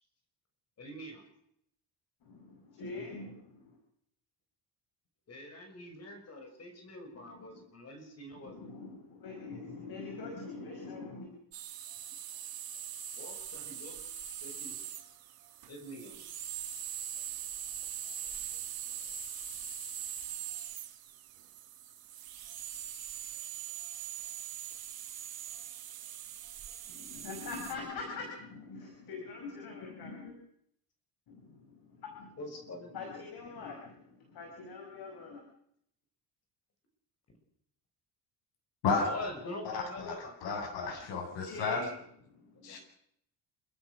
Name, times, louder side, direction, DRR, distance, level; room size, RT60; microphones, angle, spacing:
voice 1, 0.8-1.2 5.3-8.7 13.2-14.0 14.4-14.7 15.7-16.2 32.4-33.2 39.0-40.3 42.6-42.8, left 1 dB, 35° left, 4 dB, 6.2 m, -44 dB
voice 2, 2.2-3.8 7.1-7.6 8.3-11.3 26.8-30.4 31.3-35.4 41.0-41.9 42.3-42.8, left 3 dB, 60° left, 2 dB, 5.8 m, -44 dB
sound 1, 11.5-27.7, right 10 dB, 60° right, 2.2 m, -42 dB
voice 3, 39.6-41.8 42.6-42.8, left 4 dB, 85° left, 3 dB, 7.6 m, -33 dB
28.0 x 15.5 x 6.4 m, 0.72 s
cardioid pair, 140°, 42 cm